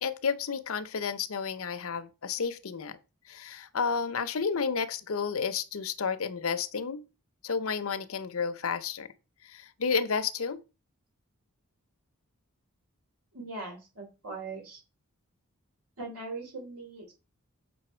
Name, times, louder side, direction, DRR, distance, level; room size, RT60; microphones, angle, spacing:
voice 1, 0.0-3.0 3.3-7.0 7.4-9.1 9.4-10.6, left 5 dB, 65° left, 0.7 m, -31 dB
voice 2, 13.3-14.8 16.0-17.1, right 3 dB, 75° right, 3.2 m, -40 dB
6.9 x 5.5 x 4.4 m
head